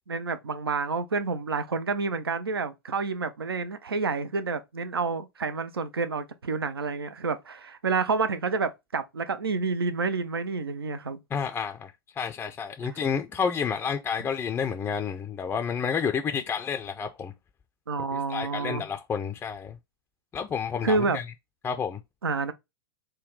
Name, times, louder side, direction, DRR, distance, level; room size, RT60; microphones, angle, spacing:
voice 1, 0.1-11.2 12.8-12.9 17.9-18.8 20.8-21.2 22.2-22.5, right 4 dB, 85° right, 0.5 m, -29 dB
voice 2, 11.3-17.3 18.1-19.8 20.3-21.2 21.6-22.0, left 6 dB, 15° left, 0.3 m, -30 dB
3.7 x 2.2 x 3.8 m
figure-of-eight pair, 100°, 12 cm